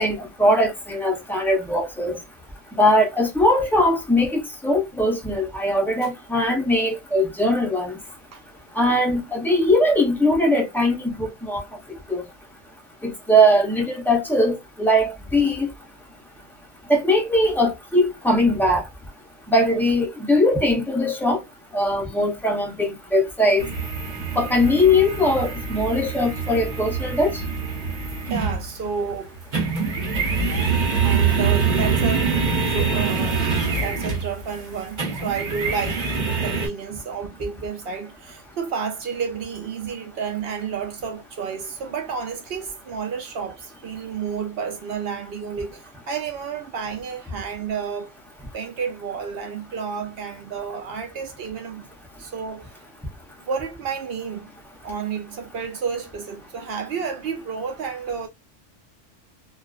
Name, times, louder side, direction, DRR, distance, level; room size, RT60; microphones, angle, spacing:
voice 1, 0.0-2.2 2.8-8.0 8.8-11.6 12.1-12.2 13.0-15.7 16.9-18.8 19.5-21.4 21.7-23.6 24.4-27.4, left 1 dB, 5° left, 0.3 m, -20 dB
sound 1, 23.6-28.9 29.2-36.7, right 5 dB, 40° right, 1.0 m, -24 dB
voice 2, 28.3-29.4 31.0-33.4 33.8-48.1 48.5-51.9 52.2-52.9 53.4-54.5 54.8-58.3, right 6 dB, 65° right, 0.7 m, -31 dB
2.3 x 2.3 x 2.3 m
omnidirectional pair, 1.3 m